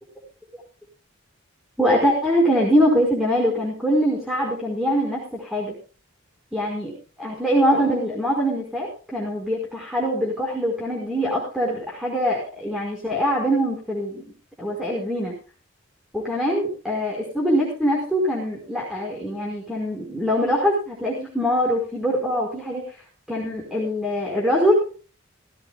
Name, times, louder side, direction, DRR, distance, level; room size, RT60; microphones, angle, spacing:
voice 1, 1.8-5.7 6.5-14.3 14.6-15.4 16.1-22.8 23.3-25.0, equal, 5° right, -2 dB, 5.0 m, -23 dB
18.5 x 16.5 x 2.4 m, 0.37 s
head